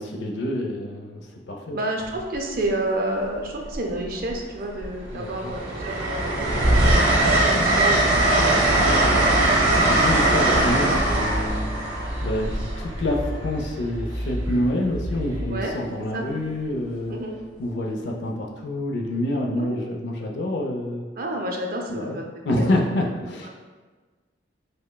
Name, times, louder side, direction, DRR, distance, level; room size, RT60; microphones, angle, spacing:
voice 1, 0.0-1.8 5.1-5.3 9.7-11.7 12.2-17.1 17.6-21.1 21.9-22.2 22.4-23.5, left 1 dB, 60° left, 1 dB, 0.4 m, -27 dB
voice 2, 1.7-6.5 7.2-9.5 11.1-11.3 15.5-15.7 16.1-16.3 17.1-17.4 19.5-19.8 21.2-22.2 22.5-22.7 23.4-23.5, right 1 dB, 45° right, 1 dB, 0.4 m, -30 dB
Train, 2.0-2.3 3.6-4.4 4.8-13.5 15.1-15.4, right 1 dB, 85° right, 0.7 m, -21 dB
sound 1, 8.2-15.6, equal, 5° left, 0.7 m, -32 dB
5.1 x 2.1 x 2.2 m, 1.4 s
head